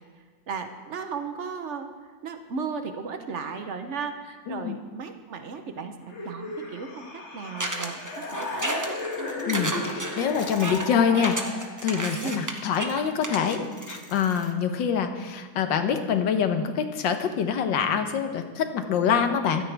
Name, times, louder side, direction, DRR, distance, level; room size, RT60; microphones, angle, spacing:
voice 1, 0.5-1.9 2.2-9.0 12.2-12.5, right 5 dB, 50° right, 7 dB, 0.9 m, -35 dB
sound 1, 6.1-11.9, left 2 dB, 40° left, 1.7 m, -35 dB
sound 2, 7.6-14.5, right 1 dB, 20° right, 0.5 m, -33 dB
voice 2, 9.5-11.4 11.8-19.6, left 7 dB, 80° left, 7 dB, 1.7 m, -25 dB
15.5 x 13.0 x 3.4 m, 1.4 s
omnidirectional pair, 2.0 m